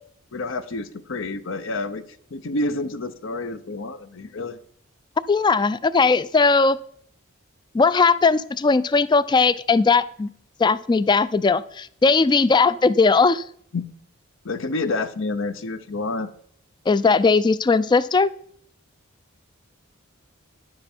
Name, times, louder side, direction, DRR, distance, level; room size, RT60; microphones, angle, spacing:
voice 1, 0.3-2.0 2.3-4.6 13.7-13.9 14.4-16.3, left 2 dB, 65° left, 12 dB, 0.7 m, -28 dB
voice 2, 5.3-6.8 7.7-10.3 10.6-13.4 16.9-18.3, left 4 dB, 20° left, 17 dB, 0.3 m, -18 dB
10.5 x 7.7 x 4.4 m, 0.63 s
head